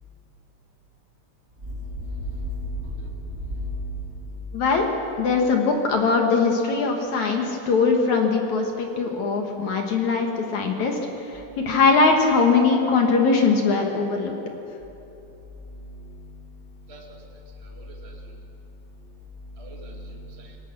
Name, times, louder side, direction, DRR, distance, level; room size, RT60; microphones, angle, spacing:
voice 1, 1.7-4.2 11.6-11.7 15.6-16.2 16.5-17.2 17.6-18.2 19.4-20.6, equal, 35° right, 0 dB, 1.0 m, -35 dB
voice 2, 4.5-4.9 5.2-11.0 11.7-14.3, left 4 dB, 55° left, 2 dB, 2.2 m, -21 dB
26.0 x 20.5 x 6.2 m, 3.0 s
omnidirectional pair, 5.4 m